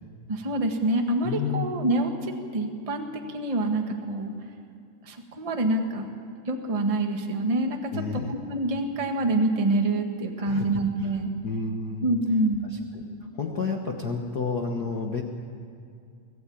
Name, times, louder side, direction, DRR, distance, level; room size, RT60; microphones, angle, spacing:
voice 1, 0.3-4.3 5.0-6.0 6.5-7.8 8.1-11.3 12.0-12.7, right 2 dB, 25° right, 3 dB, 0.8 m, -26 dB
voice 2, 1.2-1.7 7.9-8.3 10.4-11.1 11.4-12.1 12.7-13.0 13.3-15.2, left 5 dB, 60° left, 2 dB, 1.0 m, -31 dB
24.5 x 16.5 x 8.7 m, 2.4 s
omnidirectional pair, 3.7 m